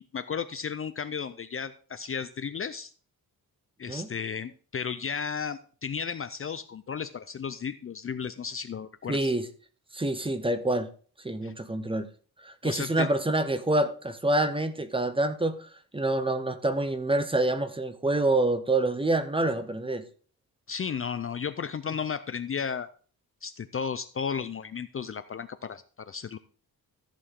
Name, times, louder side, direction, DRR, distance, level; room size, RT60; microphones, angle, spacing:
voice 1, 0.0-2.9 3.8-9.3 11.4-11.5 12.6-13.1 20.7-22.9 23.4-26.4, left 6 dB, 35° left, 0.5 m, -34 dB
voice 2, 9.1-9.5 9.9-10.9 11.2-12.1 12.4-20.0, right 2 dB, 15° right, 0.7 m, -27 dB
14.0 x 6.6 x 3.7 m
wide cardioid pair, 150°, 37 cm